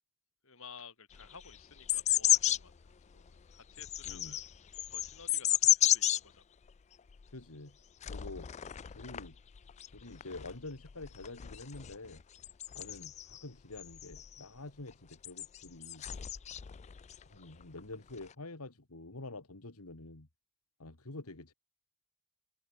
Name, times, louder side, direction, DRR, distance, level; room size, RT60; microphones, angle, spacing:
voice 1, 0.4-4.4 4.9-6.4, left 5 dB, 65° left, 6.1 m, -54 dB
sound 1, 1.1-2.7 3.3-6.2 6.7-6.8 7.1-7.3 8.0-9.3 9.5-13.4 13.8-14.4 15.1-17.2 17.6-18.3, left 12 dB, 30° left, 0.3 m, -32 dB
voice 2, 4.0-4.4 7.3-7.8 8.1-8.5 8.9-9.4 9.9-12.2 12.7-16.0 17.3-20.3 20.8-21.5, left 2 dB, 80° left, 2.3 m, -47 dB
head